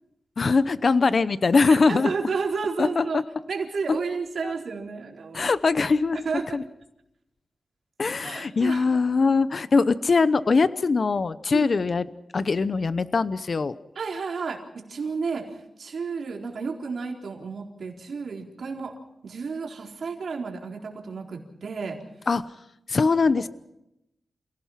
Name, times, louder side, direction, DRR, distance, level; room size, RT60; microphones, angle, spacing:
voice 1, 0.4-2.1 2.8-3.2 4.4-4.5 5.3-6.2 6.5-6.6 8.0-12.0 12.3-13.7 22.3-22.4 22.9-23.5, left 4 dB, 50° left, 15 dB, 0.8 m, -22 dB
voice 2, 1.7-3.2 3.5-5.5 6.1-6.6 8.2-8.9 11.5-11.7 14.0-15.5 15.8-18.9 19.2-22.0, right 5 dB, 70° right, 1 dB, 4.2 m, -32 dB
29.0 x 17.5 x 5.8 m, 0.83 s
wide cardioid pair, 100°, 0 cm